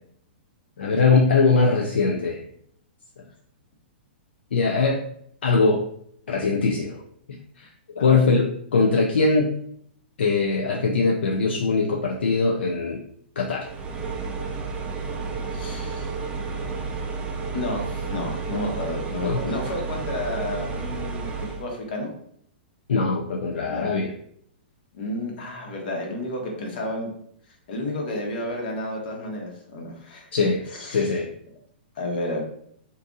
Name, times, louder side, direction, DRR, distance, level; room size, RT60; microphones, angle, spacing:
voice 1, 0.8-2.4 4.5-5.0 5.4-5.8 6.3-7.0 7.6-7.7 8.0-9.5 10.2-13.0 13.4-13.7 19.2-19.4 22.9-24.1 30.3-30.6 30.9-31.3, left 4 dB, 80° left, 0 dB, 0.5 m, -21 dB
sound 1, 13.6-21.7, right 4 dB, 20° right, 0.5 m, -31 dB
voice 2, 15.5-16.1 17.5-22.1 23.6-23.9 24.9-27.1 27.7-31.1 32.0-32.4, left 1 dB, 60° left, 0 dB, 1.1 m, -31 dB
2.7 x 2.6 x 3.5 m, 0.67 s
hypercardioid pair, 130°, 6 cm